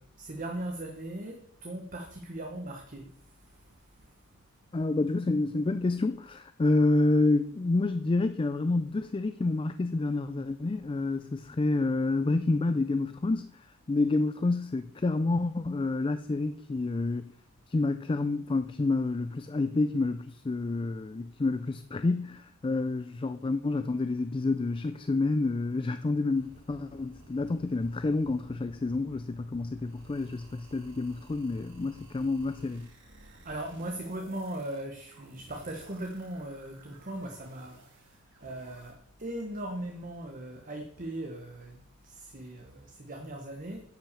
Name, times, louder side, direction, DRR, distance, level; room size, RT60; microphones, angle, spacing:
voice 1, 0.0-4.1 33.2-43.8, right 1 dB, 40° right, 1.3 m, -39 dB
voice 2, 4.7-17.3 17.7-32.9, left 2 dB, 25° left, 0.4 m, -28 dB
modular-synth-noises, 26.3-38.9, right 1 dB, 60° right, 2.7 m, -55 dB
10.0 x 5.7 x 6.9 m
head